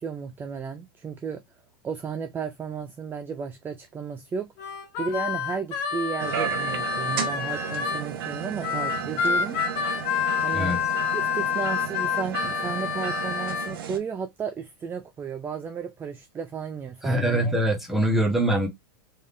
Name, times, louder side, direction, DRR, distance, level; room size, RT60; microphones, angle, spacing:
voice 1, 0.0-1.4 1.8-4.5 5.0-9.6 10.4-10.7 11.1-17.5, right 5 dB, 15° right, 0.5 m, -33 dB
Harmonica, 4.6-8.1 8.6-13.7, left 7 dB, 50° left, 1.4 m, -28 dB
sound 1, 6.2-14.0, right 8 dB, 80° right, 1.0 m, -33 dB
voice 2, 17.0-18.7, right 1 dB, ahead, 1.2 m, -23 dB
3.6 x 3.5 x 2.6 m
supercardioid pair, 130°, 12 cm